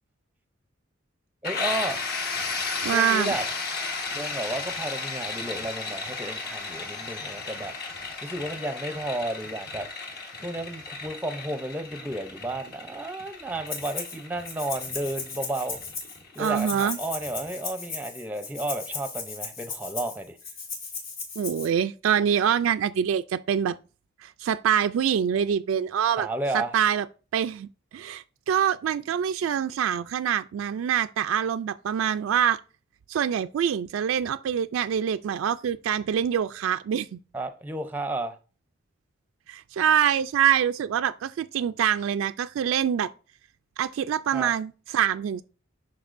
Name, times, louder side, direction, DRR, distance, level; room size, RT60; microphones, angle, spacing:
sound 1, 1.4-17.0, left 4 dB, 50° left, 1.3 m, -34 dB
voice 1, 1.4-2.0 2.9-3.5 4.1-7.7 8.2-9.9 10.4-15.8 16.4-20.4 26.2-26.7 37.3-38.4 44.3-44.5, right 1 dB, 10° right, 0.5 m, -32 dB
sound 2, 1.6-17.6, equal, 70° left, 3.4 m, -55 dB
voice 2, 2.8-3.3 16.4-17.0 21.4-23.8 24.2-26.3 26.5-27.0 27.3-27.7 27.9-32.6 33.1-37.2 39.5-43.1 43.8-45.4, right 8 dB, 85° right, 0.3 m, -25 dB
Rattle (instrument), 13.7-14.2 14.5-21.7, left 5 dB, 85° left, 2.2 m, -36 dB
11.0 x 4.3 x 2.5 m
head